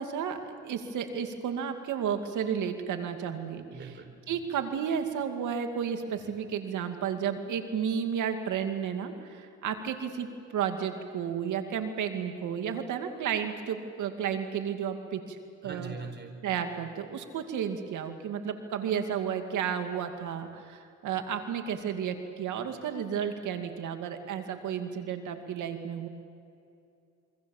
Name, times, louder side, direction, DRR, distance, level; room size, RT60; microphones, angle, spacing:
voice 1, 0.0-3.8 4.3-15.4 15.6-15.9 16.4-26.1, right 8 dB, 80° right, 6 dB, 2.4 m, -32 dB
voice 2, 3.7-4.2 15.6-16.5, right 4 dB, 35° right, 6 dB, 4.6 m, -41 dB
27.5 x 24.5 x 7.3 m, 2.6 s
cardioid pair, 90°, 30 cm